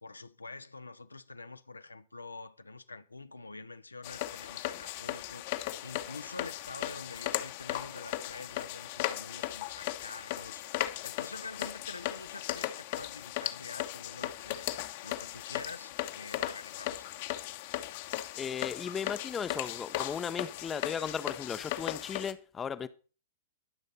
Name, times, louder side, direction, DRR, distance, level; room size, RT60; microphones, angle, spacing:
voice 1, 0.0-5.4 5.8-14.7 15.0-17.2, left 3 dB, 85° left, 0.9 m, -46 dB
sound 1, 4.0-22.3, left 15 dB, 45° left, 1.2 m, -37 dB
voice 2, 18.4-22.9, left 7 dB, 15° left, 0.8 m, -36 dB
21.5 x 7.8 x 4.1 m
figure-of-eight pair, 105°, 0 cm